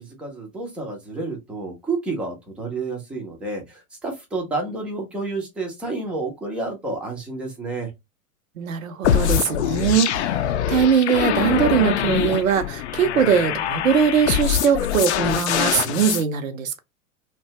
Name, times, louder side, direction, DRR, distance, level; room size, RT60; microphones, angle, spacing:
voice 1, 0.0-7.9, right 3 dB, 5° right, 0.4 m, -30 dB
voice 2, 8.6-10.3 10.7-16.8, right 7 dB, 65° right, 0.7 m, -21 dB
sound 1, 9.0-16.2, left 10 dB, 55° left, 0.5 m, -23 dB
2.6 x 2.2 x 2.7 m
figure-of-eight pair, 95°, 42 cm